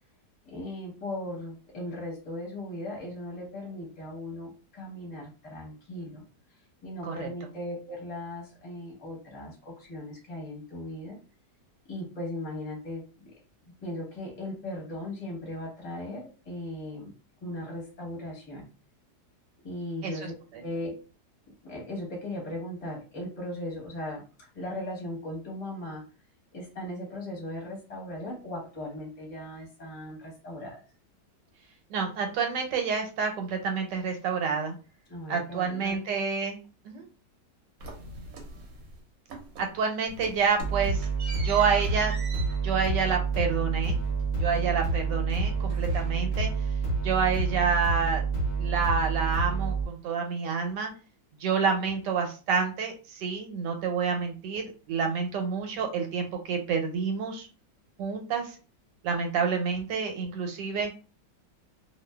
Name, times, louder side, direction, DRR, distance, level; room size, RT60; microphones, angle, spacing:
voice 1, 0.4-6.2 6.8-11.2 11.8-13.3 13.8-17.1 17.4-18.6 19.6-20.3 20.6-21.0 21.6-26.0 26.5-30.8 35.1-36.2, left 1 dB, 30° left, -2 dB, 0.7 m, -38 dB
voice 2, 31.9-34.8 35.3-36.6 36.8-37.1 39.6-41.1 41.4-42.1 42.6-44.0 44.4-46.5 47.0-48.2 48.6-50.9 51.4-57.5 58.0-58.6 59.0-60.9, right 5 dB, 90° right, 4 dB, 1.3 m, -28 dB
sound 1, 37.8-39.0 39.3-39.8 40.1-45.0 45.3-46.6, right 2 dB, 65° right, 1.0 m, -44 dB
sound 2, 40.6-49.8, right 4 dB, 60° left, 0.7 m, -28 dB
2.5 x 2.4 x 2.2 m, 0.34 s
omnidirectional pair, 1.9 m